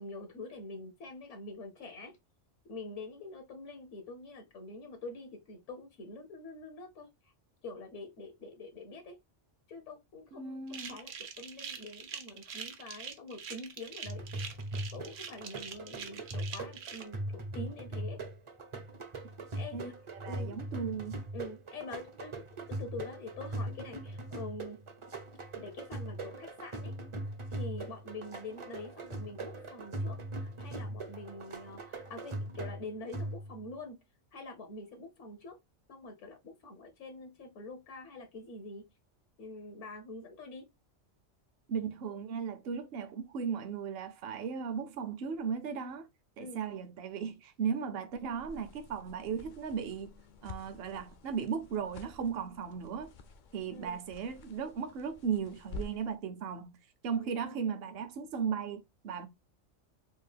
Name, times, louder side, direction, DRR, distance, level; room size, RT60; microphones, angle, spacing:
voice 1, 0.0-2.1 2.6-7.3 7.6-9.2 9.7-10.6 10.9-14.3 14.9-18.2 19.5-19.9 20.3-20.6 21.3-22.3 22.7-24.8 25.5-26.9 27.5-34.0 34.3-35.6 35.9-38.8 39.4-40.7 46.4-46.7 53.7-54.0 57.2-57.9, left 2 dB, 75° left, 1.2 m, -45 dB
voice 2, 10.3-11.0 19.7-21.2 41.7-46.1 46.4-50.1 50.4-53.1 53.5-56.7 57.0-59.3, right 6 dB, 60° right, 0.8 m, -36 dB
sound 1, 10.7-17.0, right 7 dB, 85° right, 1.1 m, -44 dB
sound 2, 14.1-33.7, right 1 dB, 35° right, 0.5 m, -40 dB
sound 3, 48.1-56.2, left 2 dB, 60° left, 0.5 m, -50 dB
3.7 x 2.4 x 3.2 m
omnidirectional pair, 1.3 m